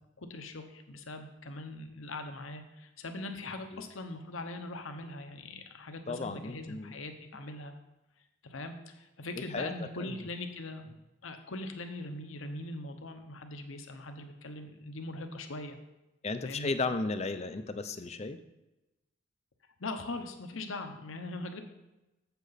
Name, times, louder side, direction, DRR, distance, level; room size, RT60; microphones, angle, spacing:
voice 1, 0.2-7.7 8.4-10.9 11.2-15.8 16.4-16.7 19.8-21.6, left 2 dB, 70° left, 6 dB, 1.0 m, -41 dB
voice 2, 6.1-6.9 9.5-10.1 16.2-18.4, left 3 dB, 30° left, 10 dB, 0.5 m, -34 dB
8.2 x 7.9 x 4.1 m, 0.98 s
head